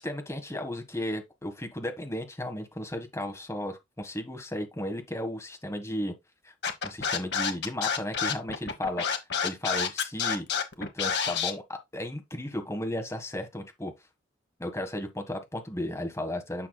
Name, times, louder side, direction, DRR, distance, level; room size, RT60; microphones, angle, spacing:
voice 1, 0.0-6.1 6.4-6.5 6.8-9.0 9.4-10.5 10.8-13.9 14.6-16.7, left 1 dB, 15° left, 1.5 m, -34 dB
Scratching (performance technique), 6.6-11.5, left 6 dB, 65° left, 1.2 m, -28 dB
8.9 x 5.9 x 2.3 m
head